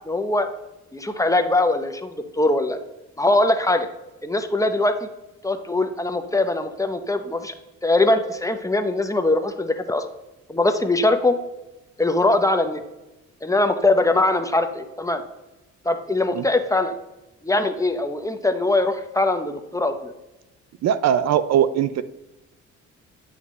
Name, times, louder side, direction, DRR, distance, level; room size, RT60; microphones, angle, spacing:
voice 1, 0.1-0.5 0.9-2.8 3.2-3.9 4.2-5.1 5.4-7.5 7.8-10.1 10.5-11.4 12.0-12.8 13.4-15.2 15.8-17.0 17.4-20.1, left 2 dB, 10° left, 7 dB, 0.7 m, -21 dB
voice 2, 20.8-22.0, right 9 dB, 60° right, 15 dB, 0.4 m, -20 dB
9.4 x 5.8 x 3.1 m, 1.0 s
cardioid pair, 90°, 30 cm